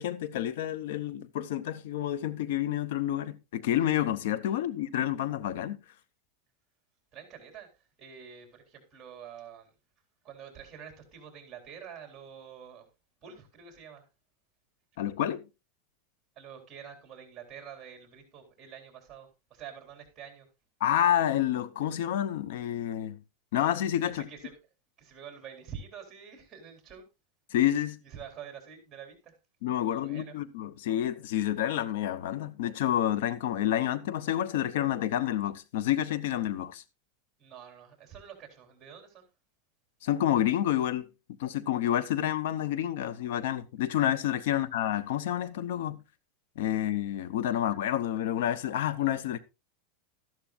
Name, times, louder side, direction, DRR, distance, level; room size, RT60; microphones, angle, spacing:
voice 1, 0.0-5.8 15.0-15.5 20.8-23.2 23.5-24.3 27.5-28.0 29.6-36.8 40.0-41.1 41.4-46.0 46.6-49.4, left 11 dB, 75° left, 0.8 m, -29 dB
voice 2, 7.1-9.7 10.2-12.8 13.2-14.1 16.4-20.5 24.0-24.6 25.0-27.0 28.0-29.3 29.8-30.3 37.4-39.2 44.5-44.6, right 7 dB, 20° right, 3.6 m, -47 dB
13.0 x 11.5 x 2.5 m
supercardioid pair, 150°, 0 cm